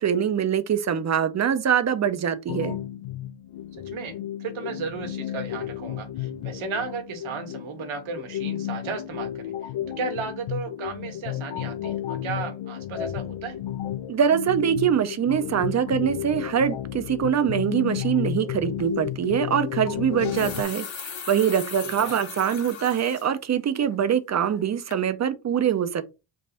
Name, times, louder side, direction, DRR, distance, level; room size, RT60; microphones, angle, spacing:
voice 1, 0.0-2.8 14.1-26.0, right 8 dB, 35° right, 0.4 m, -24 dB
sound 1, 2.5-20.6, left 11 dB, 80° left, 0.5 m, -32 dB
voice 2, 3.8-9.7 10.0-13.6 21.8-22.2, right 5 dB, 70° right, 1.1 m, -34 dB
sound 2, 18.8-19.0 20.0-23.3 23.7-23.8 24.3-24.7 24.9-25.0, left 6 dB, 65° left, 1.3 m, -38 dB
3.4 x 2.5 x 4.1 m
cardioid pair, 95°, 49 cm